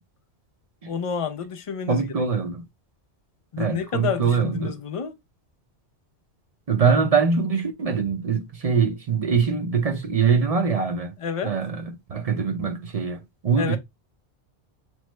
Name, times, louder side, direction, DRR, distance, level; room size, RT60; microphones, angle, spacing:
voice 1, 0.9-2.1 3.5-5.1 11.2-11.5 13.6-13.8, left 6 dB, 60° left, 0.3 m, -29 dB
voice 2, 1.9-2.6 3.6-4.7 6.7-11.2 11.4-13.8, right 5 dB, 45° right, 0.5 m, -23 dB
6.1 x 2.1 x 3.1 m
omnidirectional pair, 1.2 m